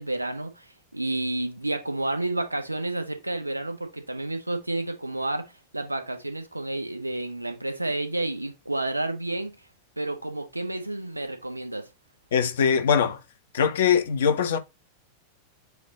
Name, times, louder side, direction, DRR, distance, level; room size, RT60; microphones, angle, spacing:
voice 1, 0.0-9.5 10.0-11.9, right 2 dB, 85° right, 1.3 m, -30 dB
voice 2, 12.3-13.2 13.5-14.6, left 7 dB, 60° left, 1.0 m, -22 dB
8.2 x 2.8 x 4.2 m
figure-of-eight pair, 90°, 0 cm